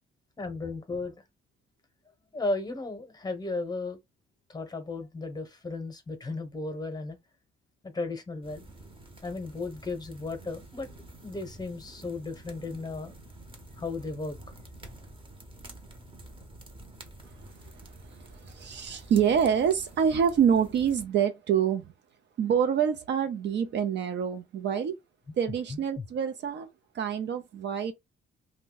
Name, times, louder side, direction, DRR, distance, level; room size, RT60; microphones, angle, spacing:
voice 1, 0.4-1.1 2.3-4.0 4.5-7.2 7.8-8.6 9.2-10.9 11.2-13.1 13.8-14.4, left 3 dB, 20° left, 0.8 m, -35 dB
sound 1, 8.4-21.1, right 1 dB, 25° right, 0.8 m, -48 dB
voice 2, 17.7-21.9 22.4-25.0 25.4-26.7 26.9-27.9, right 8 dB, 60° right, 0.5 m, -26 dB
2.6 x 2.2 x 3.8 m
cardioid pair, 100°, 21 cm